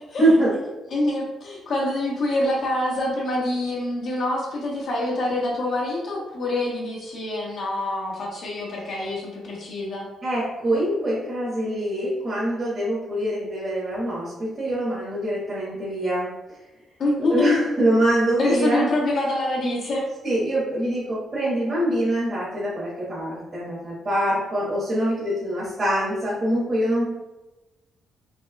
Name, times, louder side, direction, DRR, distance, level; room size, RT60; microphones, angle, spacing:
voice 1, 0.2-0.5 10.2-16.3 17.2-18.9 20.2-27.0, right 1 dB, 35° right, -8 dB, 1.2 m, -24 dB
voice 2, 0.9-10.1 17.0-17.6 18.4-20.1, left 1 dB, 60° left, -3 dB, 0.9 m, -25 dB
4.1 x 3.0 x 2.3 m, 1.0 s
cardioid pair, 90°, 0 cm